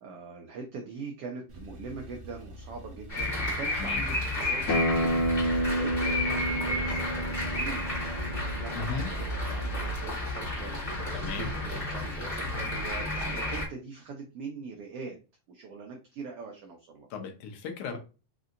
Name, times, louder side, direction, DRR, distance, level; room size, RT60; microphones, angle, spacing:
voice 1, 0.0-15.2 15.5-17.1 17.9-18.0, right 5 dB, 90° right, 2 dB, 1.3 m, -43 dB
Male speech man speaking / Car / Idling, 1.5-8.3, left 1 dB, 45° right, 0.9 m, -47 dB
sound 1, 3.1-13.6, left 1 dB, 25° left, 1.1 m, -32 dB
Acoustic guitar, 4.7-9.9, equal, 50° left, 2.1 m, -30 dB
voice 2, 8.7-9.1 11.1-11.5 17.1-18.0, left 5 dB, 75° left, 4 dB, 2.2 m, -36 dB
5.4 x 2.8 x 2.5 m, 0.31 s
omnidirectional pair, 3.6 m